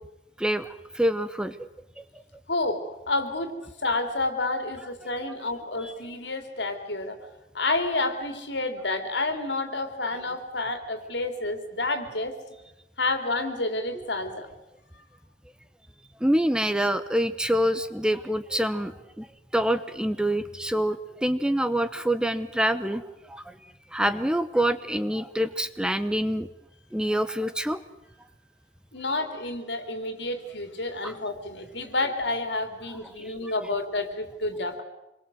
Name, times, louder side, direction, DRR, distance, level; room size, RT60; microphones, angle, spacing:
voice 1, 0.4-1.7 2.0-2.2 5.8-5.9 13.9-14.0 16.2-19.3 19.5-23.6 23.9-26.5 26.9-27.8 31.0-31.1 33.2-33.5, equal, 5° right, 11 dB, 0.8 m, -26 dB
voice 2, 2.5-7.2 7.5-12.4 13.0-14.5 28.9-34.8, left 2 dB, 75° left, 7 dB, 3.3 m, -29 dB
26.5 x 22.0 x 7.8 m, 0.94 s
head